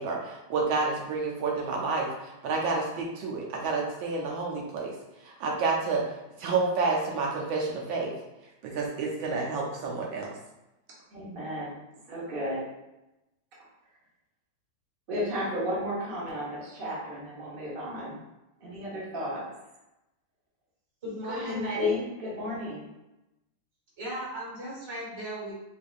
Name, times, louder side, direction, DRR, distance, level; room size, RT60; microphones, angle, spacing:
voice 1, 0.0-4.9 5.2-8.1 8.6-10.3, right 4 dB, 75° right, -2 dB, 1.4 m, -29 dB
voice 2, 11.1-11.8 12.1-12.7 15.1-18.2 18.6-19.5 21.3-22.9, left 1 dB, 50° right, -6 dB, 0.6 m, -33 dB
voice 3, 21.0-21.7 24.0-25.5, equal, 20° right, -7 dB, 0.9 m, -36 dB
4.4 x 2.5 x 2.4 m, 0.97 s
omnidirectional pair, 2.3 m